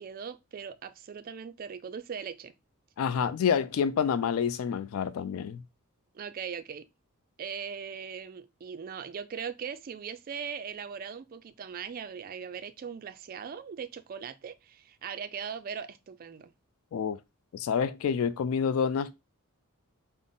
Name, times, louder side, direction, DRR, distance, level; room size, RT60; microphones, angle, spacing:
voice 1, 0.0-2.5 6.1-6.9 7.4-16.5, right 7 dB, 40° right, 0.3 m, -39 dB
voice 2, 3.0-5.6 16.9-17.2 17.5-19.2, left 7 dB, 65° left, 0.3 m, -28 dB
3.9 x 2.0 x 3.5 m
head